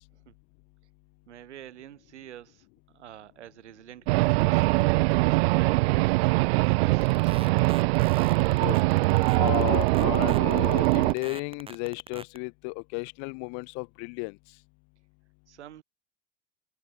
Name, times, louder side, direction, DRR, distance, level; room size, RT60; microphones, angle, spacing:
voice 1, 1.3-2.7 2.9-4.6 5.0-7.9 15.5-15.8, right 11 dB, 75° right, 7.3 m, -47 dB
sound 1, 4.1-11.1, right 23 dB, 60° right, 0.6 m, -22 dB
sound 2, 7.0-12.4, right 5 dB, 15° right, 1.1 m, -44 dB
voice 2, 9.4-14.4, left 36 dB, 55° left, 2.2 m, -33 dB
hypercardioid pair, 85°, 35 cm